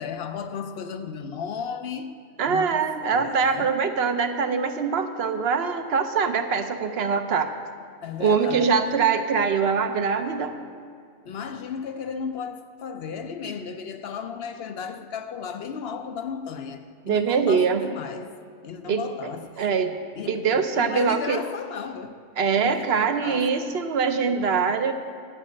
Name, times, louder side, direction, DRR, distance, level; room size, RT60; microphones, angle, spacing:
voice 1, 0.0-2.1 2.4-3.7 8.0-8.9 11.2-18.3 18.6-19.7 20.2-22.1 22.5-23.7, left 6 dB, 60° left, 0.7 m, -34 dB
voice 2, 2.4-7.5 8.2-10.6 17.1-17.8 18.9-19.0 19.6-20.0 20.3-21.4 22.4-24.9, right 5 dB, 55° right, 0.9 m, -23 dB
12.5 x 5.4 x 8.7 m
omnidirectional pair, 1.4 m